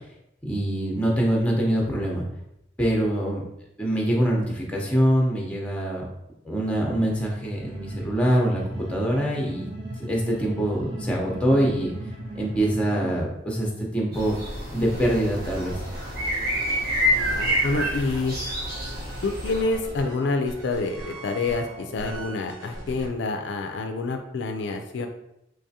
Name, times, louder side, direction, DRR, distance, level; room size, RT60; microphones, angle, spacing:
voice 1, 0.5-2.2 2.8-3.4 3.8-6.0 6.4-9.7 10.1-11.9 12.3-14.4 14.7-15.8, right 1 dB, 5° left, -2 dB, 0.7 m, -24 dB
sound 1, 7.0-13.2, right 1 dB, 30° right, 0.6 m, -38 dB
sound 2, 14.1-19.6, equal, 55° right, 1.0 m, -28 dB
sound 3, 14.9-23.1, right 1 dB, 80° right, 1.0 m, -40 dB
voice 2, 17.3-18.3 19.2-25.1, left 3 dB, 65° left, 5 dB, 0.4 m, -27 dB
3.5 x 3.2 x 2.7 m, 0.81 s
head